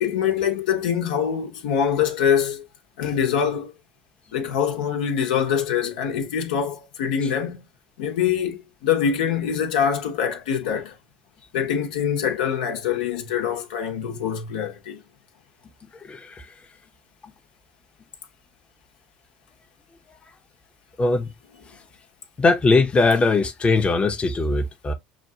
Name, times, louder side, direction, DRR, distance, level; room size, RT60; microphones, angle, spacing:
voice 1, 0.0-2.6 3.0-3.7 4.3-7.6 8.0-10.9 11.5-15.0, left 8 dB, 80° left, 1.1 m, -24 dB
voice 2, 16.1-16.5 21.0-21.3 22.4-24.9, left 3 dB, 25° left, 0.9 m, -20 dB
6.1 x 2.5 x 2.8 m
hypercardioid pair, 70°, 4 cm